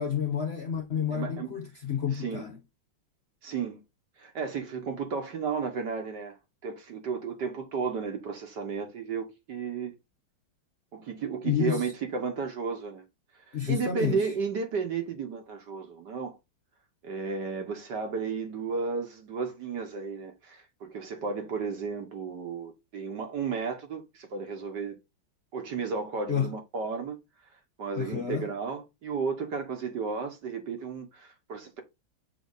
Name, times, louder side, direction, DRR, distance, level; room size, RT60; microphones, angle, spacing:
voice 1, 0.0-2.6 11.4-11.9 13.5-14.3 26.3-26.5 28.0-28.5, left 8 dB, 80° left, 0.5 m, -30 dB
voice 2, 1.1-1.6 2.1-2.5 3.4-3.8 4.2-6.4 6.6-9.9 10.9-13.0 13.5-16.4 17.0-25.0 25.5-27.2 27.8-31.8, right 5 dB, 60° right, 1.7 m, -33 dB
7.4 x 4.0 x 4.0 m
omnidirectional pair, 2.2 m